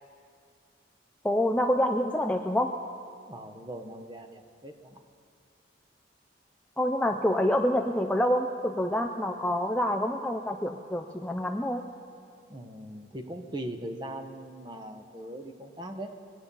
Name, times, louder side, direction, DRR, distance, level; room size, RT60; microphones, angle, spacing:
voice 1, 1.2-2.7 6.8-11.8, left 1 dB, 5° left, 3 dB, 0.4 m, -27 dB
voice 2, 3.3-5.0 12.5-16.1, right 1 dB, 25° right, 6 dB, 0.9 m, -40 dB
22.5 x 8.6 x 5.4 m, 2.3 s
head